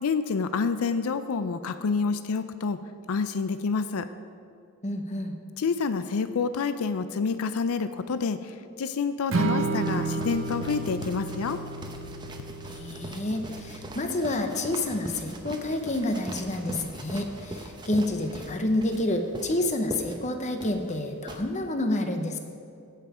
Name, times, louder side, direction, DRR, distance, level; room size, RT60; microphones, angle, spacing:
voice 1, 0.0-2.8 3.1-4.1 5.6-8.5 8.8-11.6, left 5 dB, 85° left, 11 dB, 0.5 m, -28 dB
voice 2, 4.8-5.4 12.7-22.4, left 1 dB, 35° left, 6 dB, 0.9 m, -29 dB
Strum, 9.3-15.6, right 3 dB, 60° right, 0.7 m, -33 dB
sound 1, 9.8-21.4, right 1 dB, 20° right, 0.8 m, -41 dB
16.0 x 5.8 x 4.9 m, 2.5 s
head